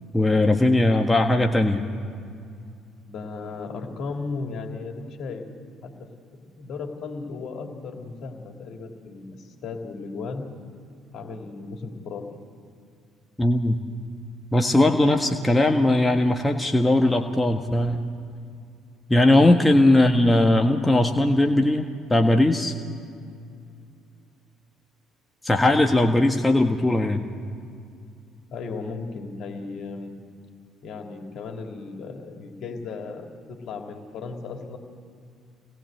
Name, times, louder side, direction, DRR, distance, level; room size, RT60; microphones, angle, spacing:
voice 1, 0.1-1.8 13.4-13.8 14.5-18.0 19.1-22.7 25.4-27.3, left 1 dB, 10° left, 4 dB, 1.6 m, -19 dB
voice 2, 3.1-5.5 5.8-6.1 6.4-10.5 11.1-12.3 19.5-19.7 28.5-30.2 30.8-34.8, left 4 dB, 55° left, 3 dB, 3.3 m, -35 dB
27.5 x 20.0 x 7.9 m, 2.4 s
figure-of-eight pair, 50°, 0 cm